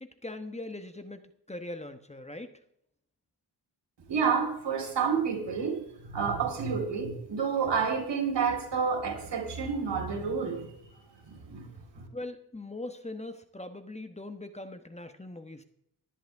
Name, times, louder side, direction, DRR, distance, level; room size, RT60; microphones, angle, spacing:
voice 1, 0.0-2.5 12.1-15.6, left 2 dB, 15° left, 8 dB, 1.0 m, -41 dB
voice 2, 4.1-10.7 11.2-12.0, right 6 dB, 90° right, 1 dB, 3.9 m, -30 dB
18.5 x 11.0 x 3.5 m, 0.72 s
wide cardioid pair, 95°, 42 cm